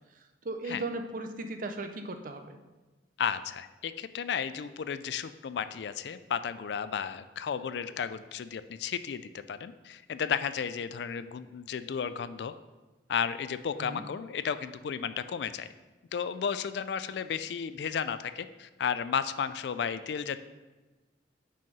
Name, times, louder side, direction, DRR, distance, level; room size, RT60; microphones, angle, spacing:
voice 1, 0.4-2.6 13.8-14.0, right 2 dB, 45° right, 6 dB, 0.6 m, -37 dB
voice 2, 3.2-12.5 13.1-15.7 16.1-20.4, left 7 dB, 65° left, 13 dB, 0.3 m, -33 dB
5.6 x 5.2 x 5.4 m, 1.2 s
head